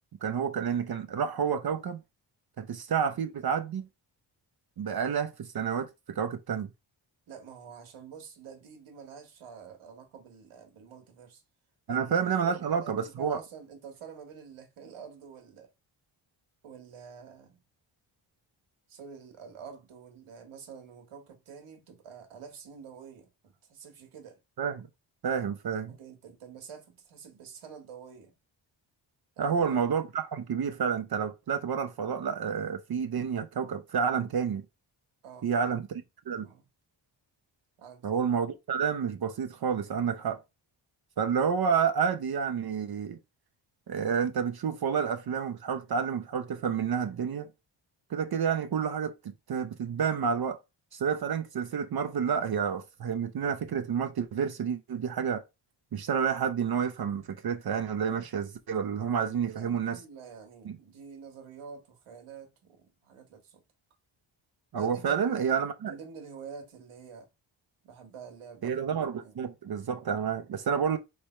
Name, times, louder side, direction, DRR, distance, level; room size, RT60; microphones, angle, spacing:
voice 1, 0.2-2.0 2.6-3.9 4.8-6.7 11.9-13.4 24.6-24.9 25.2-25.9 29.4-34.6 35.4-35.9 36.3-36.5 38.0-40.4 41.2-43.2 43.9-47.5 48.1-50.6 50.9-55.4 55.9-60.0 60.6-60.7 64.7-65.9 68.6-71.0, right 7 dB, 50° right, 0.6 m, -29 dB
voice 2, 7.3-11.4 11.9-15.7 16.6-17.6 18.9-24.4 25.9-28.4 29.4-29.8 35.2-35.7 36.4-36.6 37.8-38.3 59.3-63.6 64.8-65.4 65.8-67.3 67.8-68.8 69.1-69.4, right 6 dB, 80° right, 1.4 m, -47 dB
3.4 x 3.3 x 4.2 m
cardioid pair, 85°, 49 cm